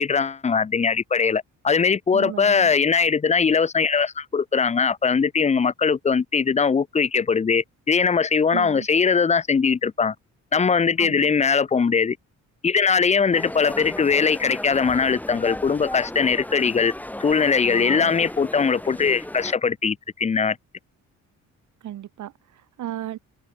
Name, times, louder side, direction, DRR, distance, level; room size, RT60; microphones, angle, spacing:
voice 1, 0.0-10.1 10.5-12.2 12.6-16.9 17.2-20.6, left 5 dB, 25° left, 0.6 m, -21 dB
voice 2, 2.1-2.7 8.5-8.9 11.0-11.3 17.6-18.1 21.8-23.2, right 12 dB, 75° right, 3.1 m, -35 dB
sound 1, 13.3-19.5, left 1 dB, 5° left, 1.8 m, -35 dB
cardioid pair, 90°, 30 cm